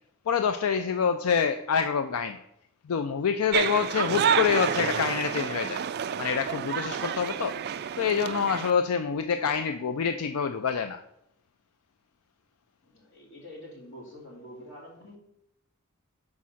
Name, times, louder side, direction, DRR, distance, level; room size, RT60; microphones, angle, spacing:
voice 1, 0.3-2.4 2.8-5.8 6.2-7.6 8.0-11.0, left 6 dB, 90° left, 9 dB, 0.4 m, -26 dB
sound 1, 3.5-8.7, right 8 dB, 50° right, 0.3 m, -29 dB
voice 2, 12.9-15.2, left 1 dB, 60° left, -4 dB, 2.8 m, -46 dB
5.6 x 4.8 x 6.2 m, 0.79 s
head